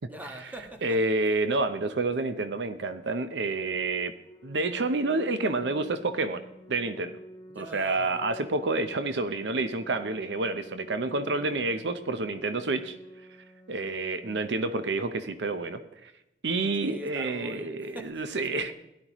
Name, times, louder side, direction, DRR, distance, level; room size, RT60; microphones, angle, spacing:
voice 1, 0.0-1.0 7.5-8.3 16.7-18.7, equal, 10° right, 4 dB, 1.4 m, -43 dB
voice 2, 0.8-4.1 4.4-6.4 6.7-7.2 7.6-13.0 13.7-16.1 16.4-18.7, right 3 dB, 70° right, 10 dB, 0.7 m, -29 dB
Organ, 4.2-15.2, equal, 25° left, 1.0 m, -48 dB
16.5 x 11.5 x 3.0 m, 0.90 s
head